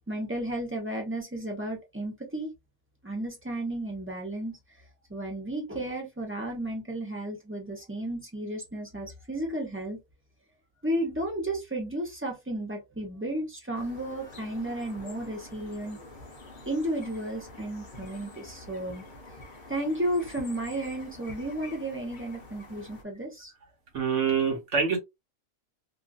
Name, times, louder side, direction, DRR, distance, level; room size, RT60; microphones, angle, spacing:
voice 1, 0.1-2.5 3.0-4.6 5.1-10.0 10.8-16.0 16.7-19.0 19.7-23.5, right 1 dB, 10° right, 0.7 m, -33 dB
sound 1, 13.7-23.0, left 2 dB, 45° left, 0.7 m, -47 dB
voice 2, 23.9-25.0, right 6 dB, 55° right, 1.4 m, -25 dB
3.1 x 2.5 x 2.3 m
omnidirectional pair, 1.6 m